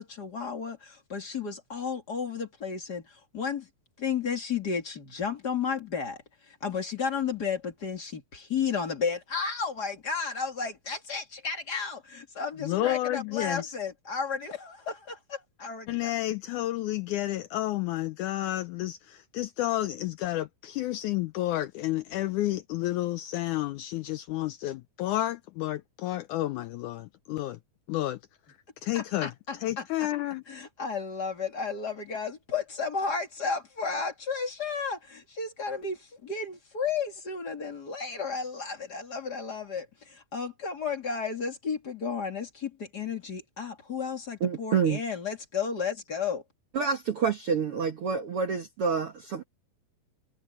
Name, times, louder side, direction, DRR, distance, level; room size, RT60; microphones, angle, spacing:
voice 1, 0.0-3.7 4.0-16.1 28.9-29.9 30.5-46.4, left 5 dB, 30° left, 2.4 m, -33 dB
voice 2, 12.6-13.7 15.9-27.6 27.9-28.2 28.8-30.4, left 15 dB, 90° left, 1.7 m, -31 dB
voice 3, 44.4-45.0 46.7-49.4, right 6 dB, 60° right, 1.5 m, -28 dB
omnidirectional pair, 4.2 m